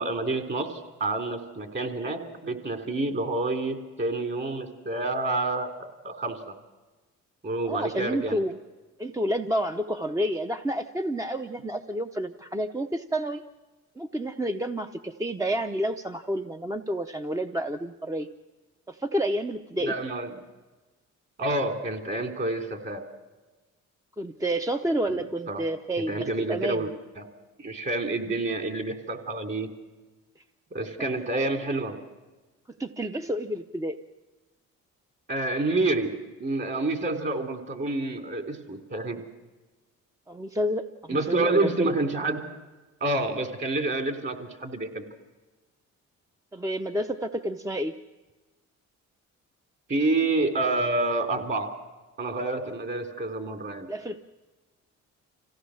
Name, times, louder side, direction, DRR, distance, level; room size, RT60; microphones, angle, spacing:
voice 1, 0.0-6.5 7.4-8.4 19.8-20.3 21.4-23.0 25.5-25.6 26.1-26.9 27.2-27.3 27.6-29.7 30.7-32.0 35.3-36.1 36.4-39.2 41.1-42.4 43.0-45.0 49.9-51.7 52.2-53.9, right 2 dB, 40° right, 4 dB, 3.2 m, -28 dB
voice 2, 7.6-8.6 9.0-13.4 14.0-18.3 18.9-20.0 24.2-26.9 30.4-30.5 32.7-34.0 40.3-42.0 46.5-47.9 53.9-54.2, right 1 dB, 10° right, 6 dB, 0.7 m, -30 dB
26.0 x 16.5 x 6.3 m, 1.2 s
cardioid pair, 90°, 30 cm